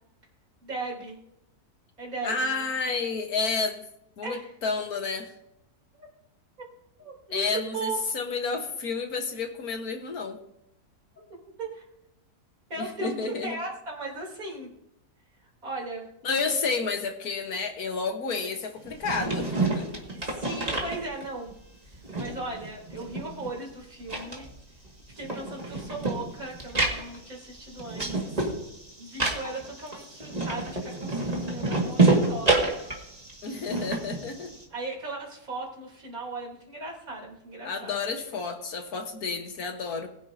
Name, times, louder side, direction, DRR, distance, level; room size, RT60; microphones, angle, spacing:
voice 1, 0.6-1.2 2.0-2.7 4.2-4.5 6.0-6.1 7.0-7.5 7.7-8.0 11.6-11.8 12.7-14.7 15.6-16.0 20.1-21.5 22.2-24.5 25.1-28.4 29.0-32.7 34.7-38.0, right 2 dB, 65° right, -3 dB, 3.9 m, -37 dB
voice 2, 2.2-3.8 4.2-5.3 7.3-10.4 12.8-13.6 16.2-19.9 33.4-34.5 37.6-40.1, left 4 dB, 70° left, 5 dB, 1.8 m, -30 dB
sound 1, 18.8-21.5 21.9-23.7 24.0-34.6, right 3 dB, 25° right, 2.1 m, -28 dB
20.5 x 9.9 x 2.7 m, 0.80 s
omnidirectional pair, 1.6 m